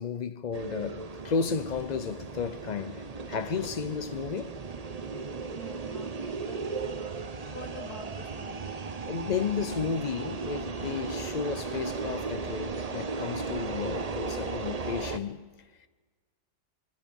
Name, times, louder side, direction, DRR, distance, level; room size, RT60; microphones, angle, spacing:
voice 1, 0.0-4.6 9.1-15.9, left 6 dB, 80° left, 0.4 m, -33 dB
sound 1, 0.5-15.2, right 4 dB, 35° right, 0.6 m, -36 dB
voice 2, 5.5-6.6 7.3-8.7, left 2 dB, 60° left, 2.4 m, -46 dB
26.0 x 22.5 x 5.3 m
omnidirectional pair, 1.8 m